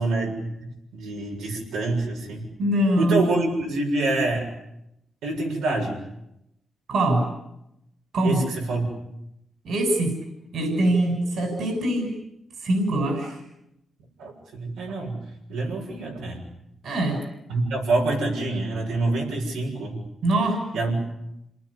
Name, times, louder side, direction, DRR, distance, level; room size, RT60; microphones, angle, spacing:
voice 1, 0.0-2.5 3.0-4.5 5.2-6.0 8.2-8.9 14.2-15.2 15.5-16.5 17.5-20.0 20.7-21.0, right 2 dB, 90° right, -2 dB, 7.1 m, -26 dB
voice 2, 2.6-3.2 6.9-7.3 8.1-8.5 9.6-10.2 10.5-12.1 12.6-13.4 16.8-17.2 20.2-20.6, right 1 dB, 70° right, 5 dB, 6.7 m, -23 dB
27.5 x 19.5 x 9.9 m, 0.84 s
supercardioid pair, 55°, 0 cm